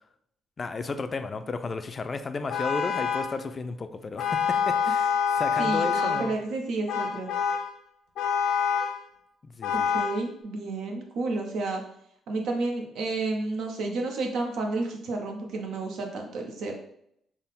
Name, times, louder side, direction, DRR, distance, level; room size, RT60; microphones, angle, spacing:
voice 1, 0.6-6.3 9.4-10.0, left 4 dB, 35° left, 9 dB, 0.3 m, -33 dB
Vehicle horn car horn honking, 2.5-3.4 4.2-6.4 6.9-7.7 8.2-9.0 9.6-10.2, left 6 dB, 90° left, 0.5 m, -26 dB
voice 2, 5.6-7.3 9.9-11.8 12.3-16.7, right 3 dB, 80° right, 2 dB, 0.7 m, -31 dB
3.6 x 2.1 x 4.1 m, 0.71 s
cardioid pair, 90°, 0 cm